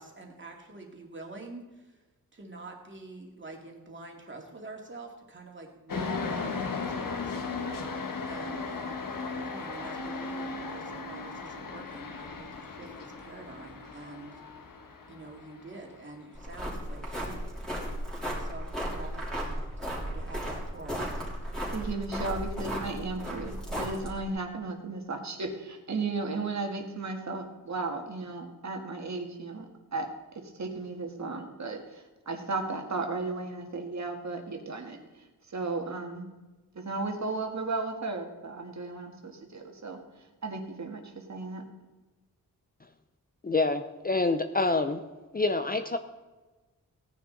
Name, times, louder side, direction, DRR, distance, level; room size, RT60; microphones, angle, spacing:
voice 1, 0.0-2.0 2.3-7.3 8.3-14.4 15.1-17.5 17.8-21.3, right 2 dB, 30° right, 1 dB, 2.3 m, -46 dB
sound 1, 5.9-16.2, left 4 dB, 65° left, 1.4 m, -36 dB
sound 2, 16.3-24.3, equal, ahead, 3.3 m, -35 dB
voice 2, 21.7-36.3 36.8-40.0 40.4-41.6, right 3 dB, 50° right, 3 dB, 1.8 m, -35 dB
voice 3, 43.4-45.0 45.3-46.0, left 3 dB, 25° left, 7 dB, 0.6 m, -27 dB
17.5 x 10.0 x 4.0 m, 1.2 s
wide cardioid pair, 160°, 35 cm